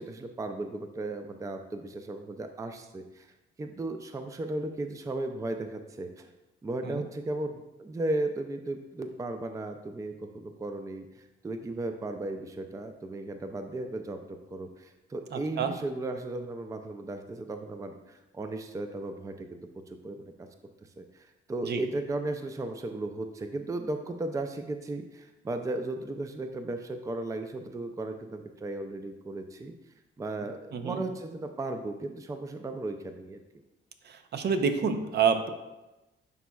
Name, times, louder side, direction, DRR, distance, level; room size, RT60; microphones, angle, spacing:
voice 1, 0.0-3.3 3.6-6.3 6.6-14.2 14.5-19.6 20.0-20.5 21.0-29.7 30.2-33.4, right 2 dB, 15° right, 7 dB, 0.4 m, -35 dB
voice 2, 15.3-15.7 21.6-21.8 30.7-31.0 34.0-35.5, right 6 dB, 60° right, 8 dB, 0.6 m, -28 dB
10.5 x 4.1 x 2.3 m, 1.0 s
cardioid pair, 90°, 20 cm